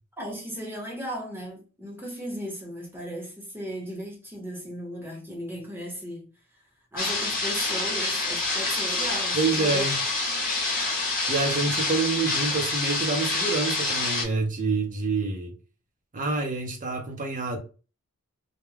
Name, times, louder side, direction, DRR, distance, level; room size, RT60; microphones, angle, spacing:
voice 1, 0.2-6.3 6.9-9.9, equal, 10° right, 0.9 m, -36 dB
sound 1, 7.0-14.2, left 3 dB, 40° left, 0.9 m, -27 dB
voice 2, 9.3-10.0 11.3-15.6 16.1-17.6, right 3 dB, 35° right, 0.6 m, -27 dB
2.3 x 2.2 x 3.2 m
head